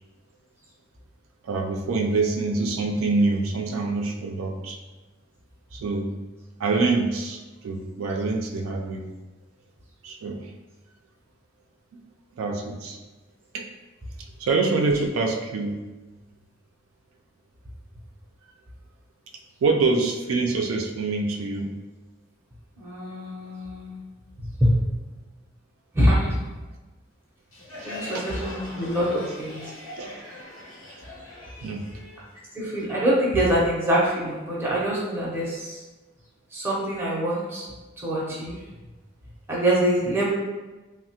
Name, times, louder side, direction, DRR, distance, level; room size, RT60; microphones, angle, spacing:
voice 1, 1.4-4.8 5.7-6.1 6.6-9.0 10.0-10.5 12.4-13.0 13.5-13.7 14.4-15.8 19.6-21.7 27.8-28.3 29.1-29.3 30.0-30.2 30.9-31.0 31.6-31.9, right 3 dB, 90° right, 2 dB, 0.4 m, -25 dB
voice 2, 22.8-24.0 24.4-24.7 25.9-26.4 27.9-29.6 32.5-35.8 36.5-37.7 38.0-38.6 39.5-40.3, right 1 dB, 10° right, -6 dB, 0.6 m, -24 dB
Crowd, 27.5-33.0, left 2 dB, 75° left, 0.9 m, -41 dB
3.2 x 2.1 x 2.8 m, 1.2 s
head